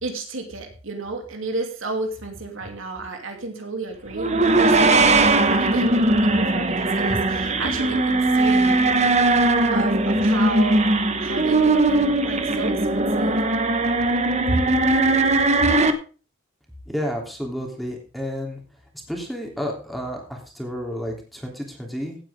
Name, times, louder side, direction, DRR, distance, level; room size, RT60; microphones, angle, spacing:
voice 1, 0.0-8.8 9.7-10.8 11.2-13.4 14.5-14.6, right 2 dB, 70° right, 3 dB, 2.9 m, -31 dB
sound 1, 4.1-15.9, right 2 dB, 35° right, 1.2 m, -19 dB
voice 2, 16.9-18.6 19.1-22.2, equal, ahead, 0 dB, 3.2 m, -31 dB
17.0 x 8.9 x 3.7 m, 0.37 s
head